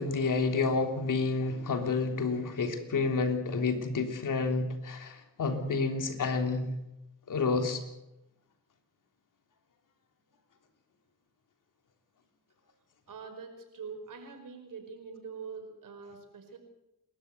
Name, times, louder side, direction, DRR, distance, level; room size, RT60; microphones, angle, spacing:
voice 1, 0.0-6.7 7.3-7.8, left 4 dB, 75° left, 5 dB, 3.4 m, -29 dB
voice 2, 13.1-16.6, right 5 dB, 80° right, 6 dB, 5.3 m, -44 dB
28.5 x 13.5 x 8.1 m, 0.91 s
cardioid pair, 65°, 32 cm